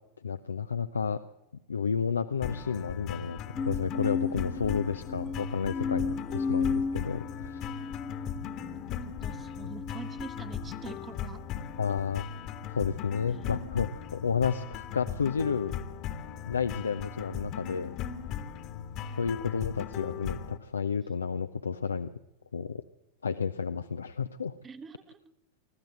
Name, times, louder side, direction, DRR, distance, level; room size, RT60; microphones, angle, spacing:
voice 1, 0.2-1.2 1.7-3.4 3.6-7.6 11.8-12.3 12.7-15.8 16.4-17.9 19.2-22.1 22.5-22.8 23.2-24.6, left 6 dB, 75° left, 10 dB, 0.6 m, -31 dB
sound 1, 2.4-20.6, left 8 dB, 40° left, 1.5 m, -38 dB
sound 2, 3.6-11.0 11.6-12.1, left 5 dB, 15° left, 1.1 m, -35 dB
voice 2, 8.5-11.4 13.3-13.5 19.3-19.5 24.6-25.3, right 5 dB, 20° right, 12 dB, 1.3 m, -46 dB
24.5 x 13.5 x 7.9 m, 0.97 s
figure-of-eight pair, 90°, 0 cm